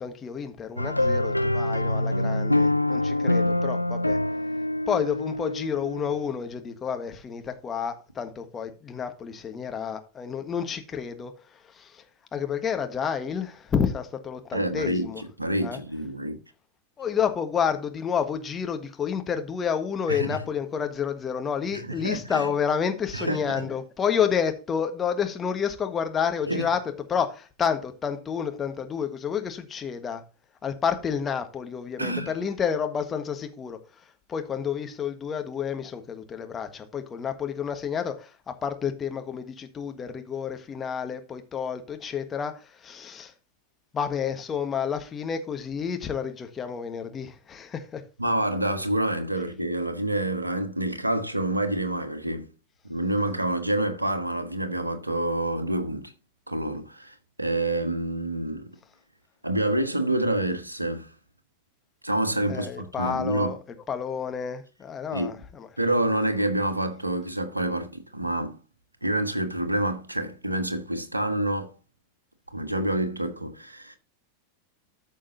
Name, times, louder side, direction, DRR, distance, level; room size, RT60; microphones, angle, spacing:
voice 1, 0.0-4.2 4.9-12.0 12.3-15.2 15.6-15.8 17.0-30.2 30.6-43.3 43.9-48.0 62.5-63.6 63.9-65.7, left 7 dB, 20° left, 1.5 m, -30 dB
sound 1, 0.8-6.4, left 1 dB, 85° left, 0.3 m, -25 dB
voice 2, 14.5-16.4 20.1-20.4 21.7-22.5 23.1-23.7 26.5-26.7 32.0-32.3 48.2-52.5 52.8-56.1 56.5-58.6 59.4-61.1 62.0-63.6 65.1-65.3 65.8-68.6 69.0-71.7 72.5-74.0, right 1 dB, 85° right, 1.3 m, -27 dB
13.5 x 6.4 x 2.7 m
figure-of-eight pair, 90°, 0 cm